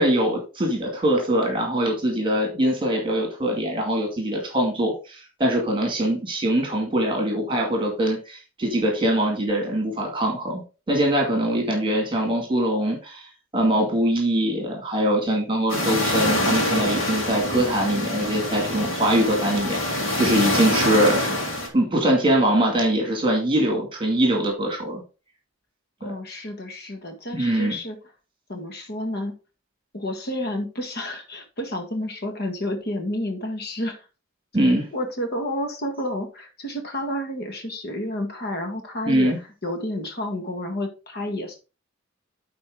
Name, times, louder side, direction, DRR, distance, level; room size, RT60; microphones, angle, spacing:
voice 1, 0.0-10.6 10.9-13.2 13.5-21.3 21.7-25.0 26.0-26.1 27.3-27.7 34.5-34.9 39.1-39.4, right 1 dB, 25° right, 1 dB, 2.2 m, -22 dB
sound 1, 15.7-21.7, left 1 dB, 70° left, 2.8 m, -25 dB
voice 2, 26.0-28.0 28.5-29.3 29.9-34.1 34.9-41.6, left 1 dB, 55° left, 4 dB, 1.8 m, -30 dB
10.5 x 4.3 x 3.7 m, 0.31 s
head